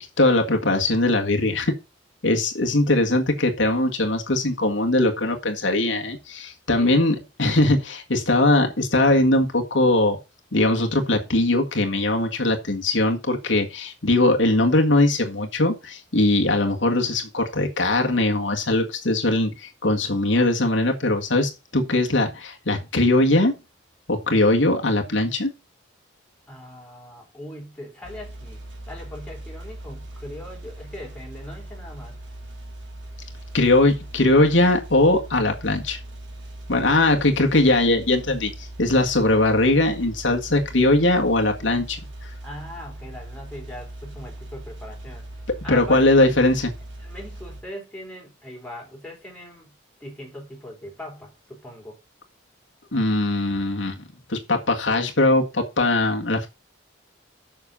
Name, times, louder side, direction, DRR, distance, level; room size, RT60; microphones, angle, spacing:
voice 1, 0.2-1.7 2.2-10.2 10.5-23.6 24.1-25.5 33.5-36.0 36.7-42.3 45.7-46.7 52.9-54.0 54.3-56.5, left 2 dB, 70° left, 1.7 m, -20 dB
voice 2, 6.7-7.1 26.5-28.6 28.9-32.2 42.4-45.2 45.6-46.4 47.0-49.7 50.0-52.0, left 1 dB, 5° left, 4.0 m, -40 dB
sound 1, 28.0-47.6, right 1 dB, 65° right, 3.1 m, -40 dB
7.3 x 6.5 x 6.9 m
head